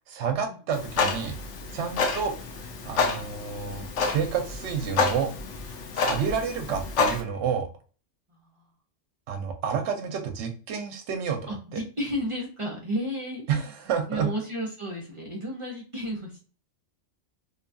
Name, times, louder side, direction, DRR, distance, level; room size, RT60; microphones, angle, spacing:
voice 1, 0.1-1.4 1.7-2.4 2.8-5.3 5.7-7.7 9.3-11.8 13.5-14.3, right 6 dB, 75° right, 5 dB, 0.9 m, -30 dB
Clock, 0.7-7.2, left 4 dB, 80° left, 1.0 m, -29 dB
voice 2, 8.3-8.6 11.5-13.6 14.1-16.4, equal, 35° right, -2 dB, 0.6 m, -33 dB
2.8 x 2.2 x 2.5 m, 0.39 s
omnidirectional pair, 1.2 m